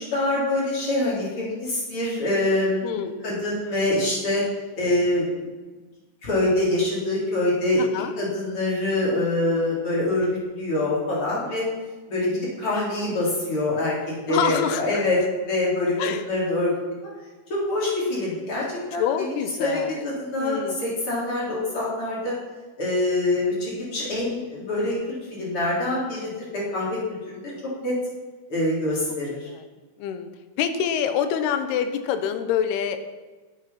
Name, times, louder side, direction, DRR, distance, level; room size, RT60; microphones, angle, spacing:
voice 1, 0.0-2.9 3.2-4.4 4.8-5.4 6.2-7.8 8.2-10.3 10.5-11.6 12.1-13.9 14.3-15.2 15.4-16.7 17.5-18.6 18.9-22.3 22.8-27.0 27.3-27.4 27.8-28.0 28.5-29.5, left 1 dB, 30° left, -5 dB, 4.5 m, -25 dB
voice 2, 2.8-3.1 7.8-8.1 14.3-15.0 16.0-16.2 19.0-20.1 20.4-20.8 29.5-29.6 30.0-30.3 30.6-33.0, left 8 dB, 75° left, 9 dB, 2.8 m, -26 dB
12.0 x 9.1 x 5.8 m, 1.3 s
omnidirectional pair, 4.8 m